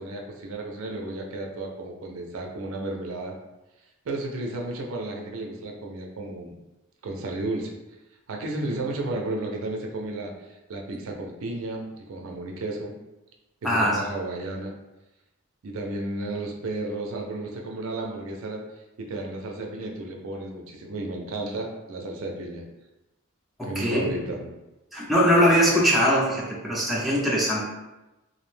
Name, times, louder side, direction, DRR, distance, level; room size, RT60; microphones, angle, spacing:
voice 1, 0.0-3.3 4.1-6.6 7.0-7.7 8.3-12.9 13.6-14.7 15.6-18.6 19.0-22.6 23.6-24.5, right 2 dB, 65° right, 1 dB, 0.4 m, -33 dB
voice 2, 13.6-14.0 23.6-24.0 24.9-27.6, equal, ahead, -5 dB, 0.4 m, -21 dB
2.5 x 2.1 x 3.1 m, 1.0 s
head